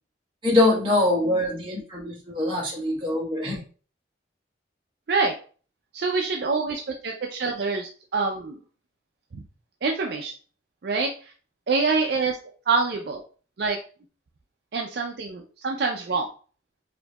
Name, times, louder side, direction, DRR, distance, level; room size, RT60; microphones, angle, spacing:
voice 1, 0.4-3.6, left 2 dB, 30° right, -4 dB, 1.3 m, -23 dB
voice 2, 5.9-8.6 9.8-10.3 10.8-11.3 11.7-12.4 12.7-13.2 13.6-13.8 14.7-16.3, right 4 dB, 60° right, 1 dB, 0.4 m, -26 dB
4.9 x 2.6 x 2.3 m, 0.39 s
head